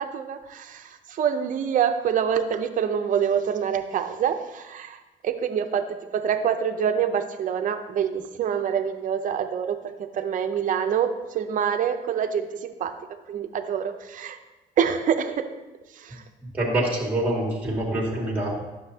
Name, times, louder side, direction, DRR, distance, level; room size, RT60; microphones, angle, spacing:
voice 1, 0.0-12.9 13.3-14.4 14.8-15.4 16.0-16.2, right 8 dB, 50° right, 8 dB, 0.7 m, -26 dB
voice 2, 16.5-18.6, right 1 dB, 10° right, -3 dB, 1.7 m, -25 dB
9.9 x 6.8 x 2.8 m, 1.1 s
cardioid pair, 110°, 17 cm